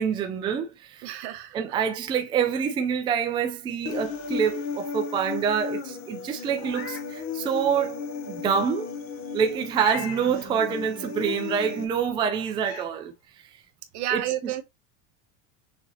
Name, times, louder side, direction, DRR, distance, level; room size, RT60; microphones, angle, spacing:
voice 1, 0.0-1.1 1.5-8.9 9.3-13.1 14.1-14.2, right 7 dB, 15° right, 0.4 m, -26 dB
voice 2, 1.0-1.6 13.9-14.6, right 13 dB, 70° right, 1.2 m, -30 dB
Human voice, 3.9-11.8, left 6 dB, 40° left, 0.8 m, -35 dB
Meow, 6.5-7.1 7.6-7.7 9.7-10.3 11.9-12.0 12.6-12.9, left 6 dB, 65° left, 1.7 m, -38 dB
6.3 x 2.9 x 2.7 m
cardioid pair, 165°, 35 cm